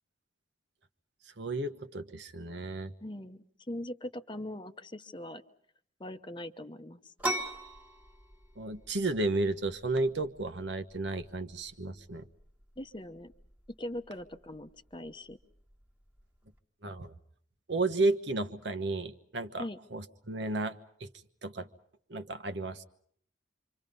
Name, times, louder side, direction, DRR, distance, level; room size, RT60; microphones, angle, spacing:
voice 1, 1.4-2.9 8.6-12.2 16.8-17.1 17.7-21.1 21.4-21.7 22.1-22.8, right 2 dB, 65° right, 9 dB, 1.2 m, -33 dB
voice 2, 3.0-5.4 6.0-7.1 12.8-13.3 13.8-15.4 19.6-19.8, left 1 dB, 25° left, 9 dB, 0.9 m, -41 dB
sound 1, 7.2-16.6, right 1 dB, 10° right, 1.6 m, -43 dB
28.5 x 25.0 x 5.4 m, 0.65 s
head